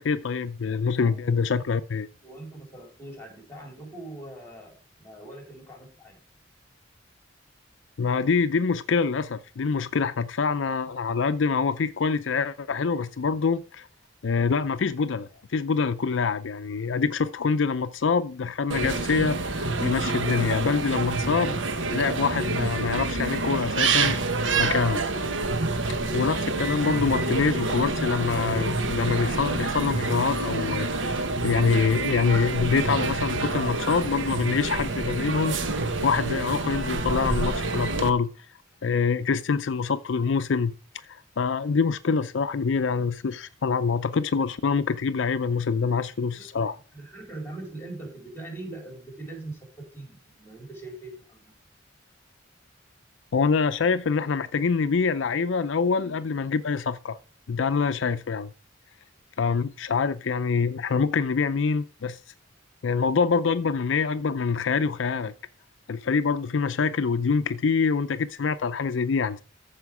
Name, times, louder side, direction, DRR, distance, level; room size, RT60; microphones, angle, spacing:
voice 1, 0.0-2.1 8.0-13.9 14.2-21.6 21.9-24.2 24.6-25.0 26.1-35.6 36.0-38.3 38.8-40.7 41.1-46.8 53.3-57.2 57.5-58.5 59.4-62.2 62.8-65.3 65.9-69.4, left 5 dB, 75° left, 0.5 m, -25 dB
voice 2, 0.8-1.2 2.2-6.2 46.3-51.5, right 2 dB, 15° left, 4.0 m, -42 dB
sound 1, 18.7-38.1, right 3 dB, 85° right, 1.3 m, -27 dB
14.0 x 5.0 x 4.8 m
head